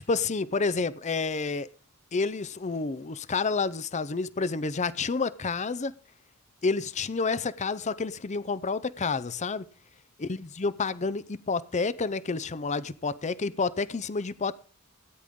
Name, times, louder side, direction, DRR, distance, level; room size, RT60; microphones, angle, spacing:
voice 1, 0.0-1.7 2.1-5.9 6.6-9.7 10.2-14.6, left 4 dB, 35° left, 0.6 m, -29 dB
17.5 x 10.0 x 3.7 m
head